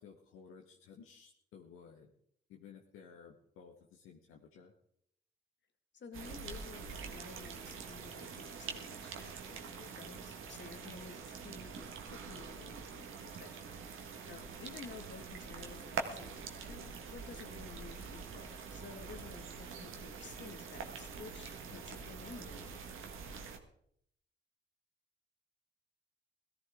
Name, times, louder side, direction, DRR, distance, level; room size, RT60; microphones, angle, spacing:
voice 1, 0.0-2.1 2.5-4.7 21.7-22.1, left 6 dB, 85° left, 1 dB, 1.3 m, -56 dB
voice 2, 5.9-23.0, left 5 dB, 60° left, 7 dB, 1.9 m, -53 dB
sound 1, 6.1-23.6, right 5 dB, 75° right, 1.6 m, -45 dB
18.0 x 13.5 x 3.6 m, 0.69 s
supercardioid pair, 45°, 21 cm